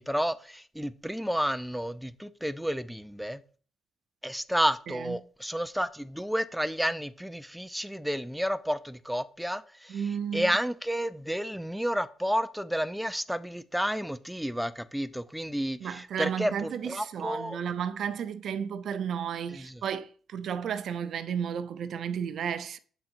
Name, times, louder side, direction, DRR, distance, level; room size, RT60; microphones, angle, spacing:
voice 1, 0.0-3.4 4.2-10.0 10.3-17.6 19.5-19.8, equal, ahead, 0.5 m, -31 dB
voice 2, 4.9-5.2 9.9-10.5 15.8-22.8, right 8 dB, 65° right, 0.5 m, -33 dB
6.9 x 3.8 x 4.4 m
cardioid pair, 90°, 0 cm